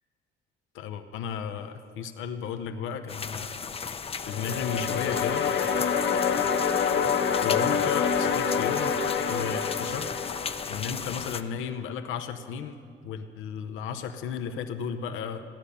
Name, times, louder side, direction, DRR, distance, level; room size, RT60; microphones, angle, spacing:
voice 1, 0.7-3.6 4.2-5.4 7.4-9.0 9.3-10.1 10.7-15.4, left 7 dB, 90° left, 7 dB, 0.8 m, -34 dB
sound 1, 3.1-11.4, left 5 dB, 30° left, 0.6 m, -36 dB
sound 2, 4.2-11.2, left 6 dB, 65° left, 1.2 m, -27 dB
15.0 x 10.0 x 6.9 m, 2.3 s
cardioid pair, 90°, 20 cm